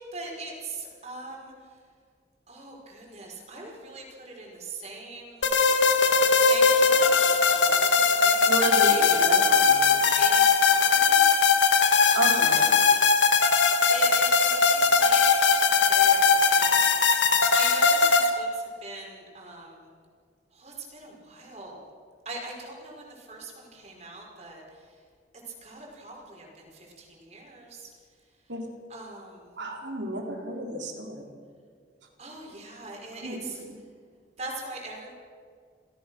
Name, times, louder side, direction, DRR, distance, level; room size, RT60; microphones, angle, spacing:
voice 1, 0.0-1.5 2.5-5.4 6.3-8.6 8.9-9.2 9.4-9.6 9.8-11.3 12.1-13.1 13.9-15.2 15.7-16.9 17.5-19.9 20.5-21.8 22.2-24.6 25.6-27.9 28.9-29.5 32.2-33.6 34.4-35.1, right 2 dB, 35° right, -1 dB, 4.9 m, -41 dB
sound 1, 5.4-18.3, left 5 dB, 85° left, 2.0 m, -20 dB
voice 2, 8.4-10.0 12.1-12.7 28.5-28.7 29.6-31.2 33.2-33.4 33.7-33.8, right 1 dB, 80° right, 1 dB, 4.4 m, -31 dB
28.5 x 16.0 x 6.3 m, 2.1 s
head